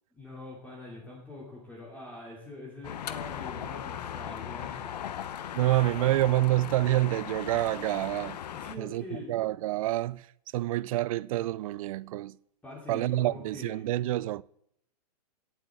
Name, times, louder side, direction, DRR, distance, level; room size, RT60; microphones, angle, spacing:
voice 1, 0.1-5.3 8.5-9.3 12.6-13.8, left 2 dB, 5° left, 2.7 m, -44 dB
sound 1, 2.8-8.8, left 9 dB, 85° left, 0.9 m, -38 dB
voice 2, 5.5-8.4 8.8-10.3 10.5-12.4 12.9-14.4, right 16 dB, 60° right, 0.4 m, -27 dB
17.5 x 7.9 x 3.6 m
hypercardioid pair, 140°, 20 cm